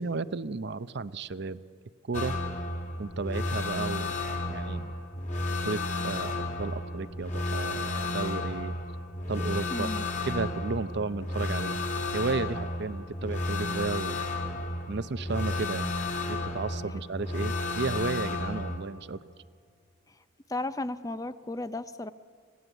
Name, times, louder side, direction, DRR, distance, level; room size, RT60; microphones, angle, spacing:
voice 1, 0.0-1.6 2.1-2.4 3.0-4.9 5.6-8.7 9.3-9.9 10.2-11.8 12.1-14.2 14.9-16.0 16.3-19.2, right 3 dB, 55° right, 14 dB, 0.6 m, -33 dB
sound 1, 2.1-18.8, left 2 dB, 35° left, 2.5 m, -32 dB
voice 2, 9.7-10.0 20.5-22.1, left 2 dB, 15° left, 13 dB, 0.5 m, -34 dB
26.5 x 16.5 x 8.1 m, 2.2 s
head